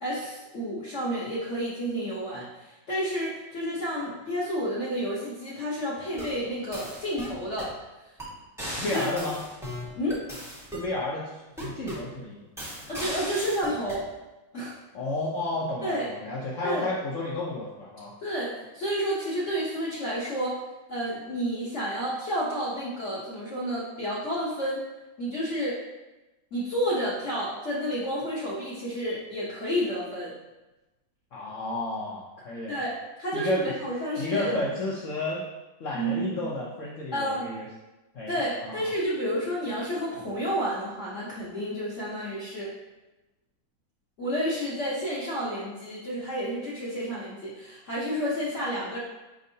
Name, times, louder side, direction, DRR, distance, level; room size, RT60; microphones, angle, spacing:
voice 1, 0.0-7.7 8.9-9.1 9.9-10.2 12.9-14.1 14.5-14.7 15.8-16.1 16.6-16.9 18.2-20.6 20.9-24.9 25.2-25.8 26.5-30.3 32.7-34.5 35.9-36.4 37.1-37.5 38.3-42.7 44.2-49.0, equal, 50° left, -7 dB, 0.9 m, -30 dB
sound 1, 6.0-6.4 6.7-7.8 8.2-8.3 8.6-10.9 11.6-12.1 12.6-14.0, equal, 5° right, 0.5 m, -37 dB
voice 2, 8.8-9.4 10.7-12.4 14.9-18.1 31.3-32.8 33.3-33.7 34.2-35.4 35.8-37.7 38.1-38.4 38.6-38.7, left 2 dB, 75° left, -5 dB, 0.7 m, -31 dB
5.2 x 3.6 x 2.7 m, 1.1 s
omnidirectional pair, 2.1 m